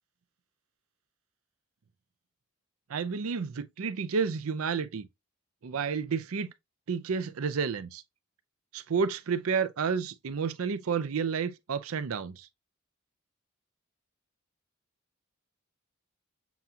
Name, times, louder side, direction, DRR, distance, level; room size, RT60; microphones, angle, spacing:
voice 1, 2.9-5.1 5.6-6.5 6.9-8.0 8.7-12.5, right 5 dB, 80° right, 0.5 m, -30 dB
7.1 x 2.4 x 2.7 m
head